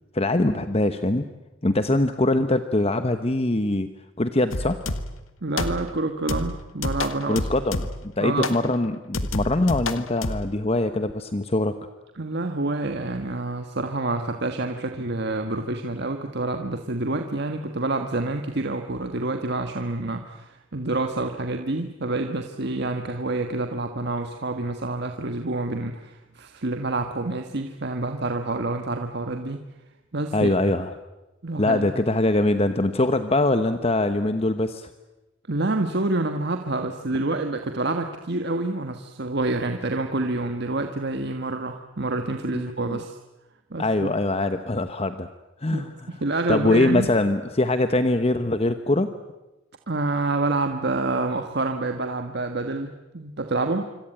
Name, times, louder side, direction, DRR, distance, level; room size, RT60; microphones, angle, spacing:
voice 1, 0.1-1.2 1.6-3.9 4.2-4.8 7.3-7.9 8.2-11.7 30.3-30.9 31.6-34.9 42.8-43.0 43.8-45.3 45.6-45.9 46.5-49.1, left 2 dB, 30° left, 9 dB, 1.0 m, -22 dB
sound 1, 4.5-5.2 5.6-6.0 6.3-8.1 8.4-8.7 9.1-10.5, left 2 dB, 85° left, 1.7 m, -29 dB
voice 2, 5.4-7.5 8.2-8.5 12.2-29.6 30.1-30.5 31.4-31.9 35.5-43.2 43.7-44.1 45.7-47.1 49.9-53.9, right 2 dB, 55° right, 5 dB, 1.5 m, -27 dB
26.5 x 25.0 x 9.0 m, 1.0 s
head